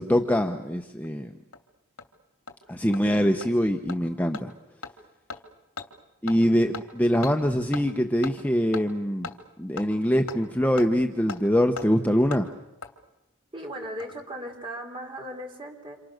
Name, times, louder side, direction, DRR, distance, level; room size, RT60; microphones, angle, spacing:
voice 1, 0.0-1.3 2.7-4.5 6.2-9.3 9.6-12.5, equal, 5° left, 4 dB, 1.0 m, -23 dB
Hammer, 1.0-1.1 1.5-1.6 2.0-2.1 2.5-2.6 2.9-3.0 3.4-3.5 3.9-4.0 4.3-4.4 4.8-4.9 5.3-5.4 5.8-5.9 6.3-6.4 6.7-6.8 7.2-7.3 7.7-7.8 8.2-8.3 8.7-8.8 9.2-9.4 9.8-9.9 10.3-10.4 10.8-10.9 11.3-11.4 11.8-11.9 12.3-12.4 12.8-12.9 13.8-14.2 14.5-14.6, left 4 dB, 75° left, 2.8 m, -37 dB
voice 2, 13.5-16.0, equal, 25° right, 3 dB, 4.6 m, -37 dB
30.0 x 28.0 x 6.7 m, 0.96 s
head